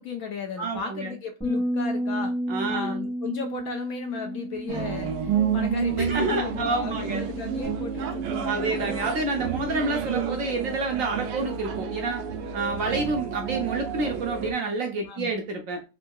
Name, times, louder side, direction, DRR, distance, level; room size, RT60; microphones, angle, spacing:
voice 1, 0.0-2.4 2.7-8.7 15.1-15.3, left 6 dB, 70° left, 0.9 m, -35 dB
voice 2, 0.6-1.1 2.5-3.0 6.0-7.2 8.4-12.2 12.5-15.8, right 3 dB, 65° right, 0.8 m, -28 dB
Bass guitar, 1.4-7.7, equal, 5° left, 0.7 m, -32 dB
sound 1, 4.7-14.5, right 7 dB, 85° right, 1.2 m, -30 dB
3.6 x 2.7 x 2.2 m
omnidirectional pair, 1.9 m